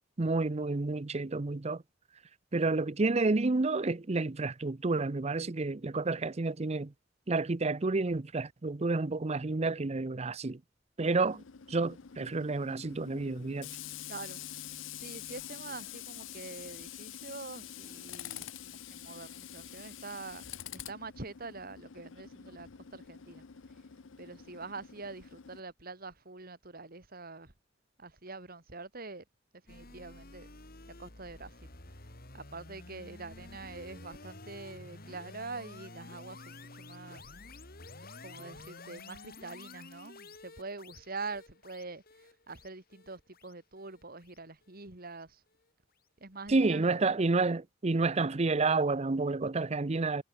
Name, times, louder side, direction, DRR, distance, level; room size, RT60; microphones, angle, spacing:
voice 1, 0.2-1.8 2.5-6.9 7.3-10.6 11.0-13.7 46.5-50.2, right 3 dB, 35° right, 0.7 m, -30 dB
Tools, 11.3-25.6, left 10 dB, 85° left, 0.7 m, -46 dB
voice 2, 14.1-14.4 15.0-20.4 20.7-23.4 24.2-27.5 28.0-29.2 29.7-30.5 31.0-31.5 32.3-37.2 38.2-42.0 42.5-45.4 46.2-46.9, right 3 dB, 50° right, 3.0 m, -45 dB
sound 1, 29.7-44.8, left 2 dB, 50° left, 4.6 m, -50 dB
head